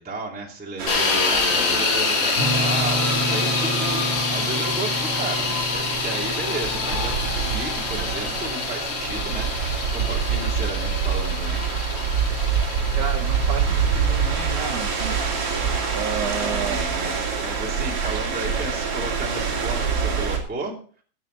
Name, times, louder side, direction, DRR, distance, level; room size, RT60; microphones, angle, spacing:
voice 1, 0.0-11.6 16.2-20.7, right 2 dB, 5° right, -1 dB, 1.6 m, -33 dB
sound 1, 0.8-20.4, right 6 dB, 40° right, 3.0 m, -26 dB
sound 2, 0.9-18.8, left 5 dB, 75° left, 4.9 m, -28 dB
sound 3, 2.3-11.1, right 1 dB, 25° left, 1.3 m, -32 dB
voice 2, 13.0-15.1 15.6-16.8, right 7 dB, 75° right, 2 dB, 1.8 m, -31 dB
15.0 x 9.2 x 4.0 m, 0.43 s
omnidirectional pair, 5.0 m